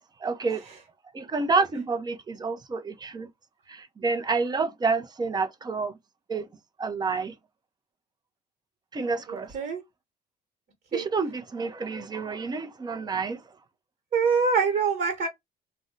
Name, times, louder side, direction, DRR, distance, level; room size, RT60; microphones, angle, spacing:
voice 1, 0.2-0.6 1.1-3.3 3.7-5.9 6.3-6.4 6.8-7.3 8.9-9.5 10.9-13.4, right 4 dB, 25° right, 0.6 m, -28 dB
voice 2, 9.3-9.8 10.9-11.1 14.1-15.3, right 5 dB, 55° right, 1.2 m, -25 dB
2.6 x 2.1 x 3.7 m
cardioid pair, 110°, 17 cm